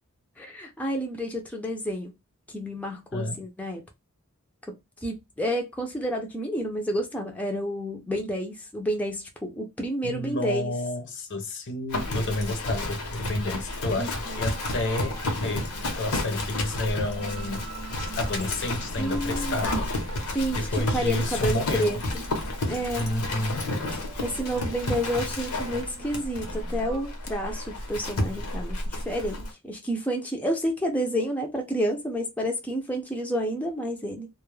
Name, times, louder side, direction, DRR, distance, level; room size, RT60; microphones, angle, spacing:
voice 1, 0.4-2.1 2.5-3.8 4.7-10.7 14.0-14.5 19.0-19.8 20.3-22.2 22.7-23.1 24.2-34.3, equal, 5° left, 0.4 m, -30 dB
voice 2, 3.1-3.4 10.0-17.6 18.2-19.9 20.5-22.0 22.9-23.7, left 1 dB, 55° left, 0.5 m, -30 dB
Livestock farm animals working animals, 11.9-29.5, left 1 dB, 90° left, 0.8 m, -31 dB
sound 1, 14.3-27.1, right 4 dB, 85° right, 0.7 m, -46 dB
2.2 x 2.0 x 3.1 m
head